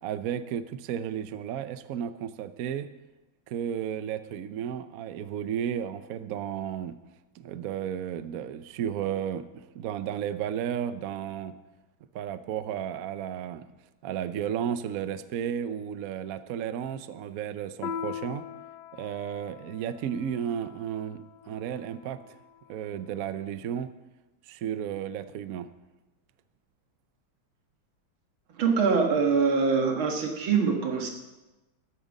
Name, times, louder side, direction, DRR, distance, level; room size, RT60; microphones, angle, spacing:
voice 1, 0.0-2.9 3.5-7.0 7.3-11.5 12.1-13.6 14.0-18.5 18.9-22.3 22.7-23.9 24.5-25.7, right 9 dB, 65° right, 12 dB, 0.9 m, -33 dB
Piano, 17.8-22.8, left 8 dB, 65° left, 1.4 m, -41 dB
voice 2, 28.5-31.1, right 5 dB, 90° right, 2 dB, 2.4 m, -24 dB
13.5 x 11.0 x 5.3 m, 1.1 s
omnidirectional pair, 2.2 m